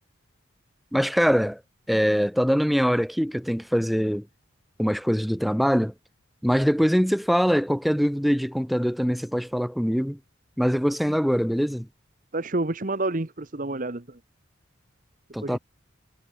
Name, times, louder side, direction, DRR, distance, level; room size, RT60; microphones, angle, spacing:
voice 1, 0.9-1.6 1.9-4.3 4.8-5.9 6.4-10.2 10.6-11.9 15.3-15.6, equal, ahead, 1.9 m, -23 dB
voice 2, 12.3-14.2 15.4-15.6, right 2 dB, 40° right, 1.1 m, -29 dB
head